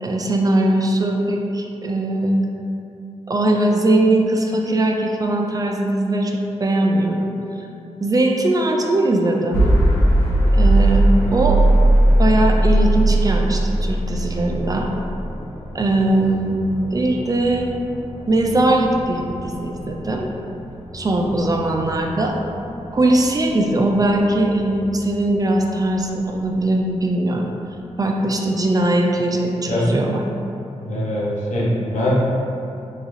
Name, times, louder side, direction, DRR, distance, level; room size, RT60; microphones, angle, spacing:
voice 1, 0.0-2.4 3.3-6.3 6.6-7.3 8.0-9.7 10.5-11.0 11.3-11.6 12.2-14.9 15.7-16.6 16.9-17.7 18.3-20.3 20.9-22.4 22.9-27.5 28.0-30.2, right 1 dB, 30° right, 1 dB, 0.3 m, -20 dB
sound 1, 9.5-25.5, right 1 dB, 20° left, 0.7 m, -20 dB
voice 2, 30.8-32.2, left 1 dB, 90° left, -6 dB, 0.7 m, -22 dB
3.7 x 2.3 x 3.1 m, 2.7 s
wide cardioid pair, 90°, 12 cm